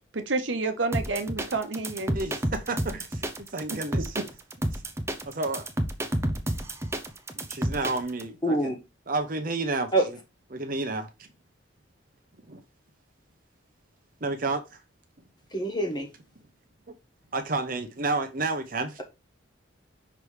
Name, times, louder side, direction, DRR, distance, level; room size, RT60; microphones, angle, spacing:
voice 1, 0.1-2.2 3.7-4.2, right 3 dB, 65° right, 1.0 m, -30 dB
sound 1, 0.9-8.2, right 1 dB, 15° right, 0.6 m, -30 dB
voice 2, 2.1-3.3 3.5-4.1 4.7-4.8 5.3-5.6 7.4-8.7 9.1-9.9 10.5-11.3 12.5-12.6 14.2-14.6 17.3-19.0, right 3 dB, 45° right, 0.8 m, -30 dB
voice 3, 8.4-8.8 9.9-10.1 15.5-16.1, right 1 dB, 20° left, 1.4 m, -25 dB
5.9 x 3.3 x 4.9 m
head